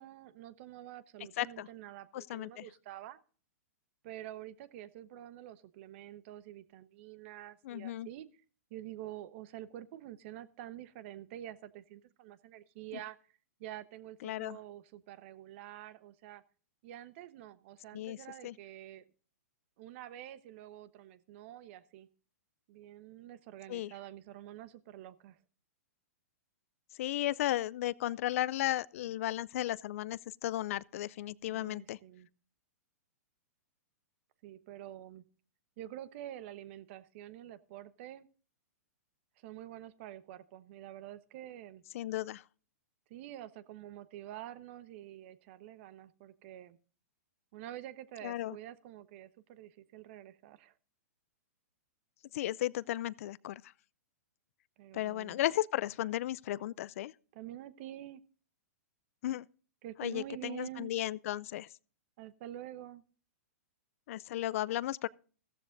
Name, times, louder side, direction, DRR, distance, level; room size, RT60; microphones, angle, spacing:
voice 1, 0.0-3.2 4.0-8.3 8.7-13.2 13.6-16.4 16.8-19.0 19.8-22.1 22.7-25.4 31.5-32.3 34.4-35.2 35.8-38.3 39.4-41.8 43.1-46.8 47.5-50.7 54.8-55.4 57.3-58.2 59.8-60.9 62.2-63.0, right 13 dB, 50° right, 1.1 m, -47 dB
voice 2, 1.4-1.7 2.1-2.6 7.6-8.1 14.2-14.6 17.9-18.2 18.4-18.5 23.7-23.9 27.0-32.0 41.9-42.4 48.2-48.6 52.3-53.6 54.9-57.1 59.2-59.5 60.0-61.7 64.1-65.1, left 14 dB, 55° left, 0.4 m, -35 dB
15.0 x 14.0 x 2.6 m
hypercardioid pair, 125°, 9 cm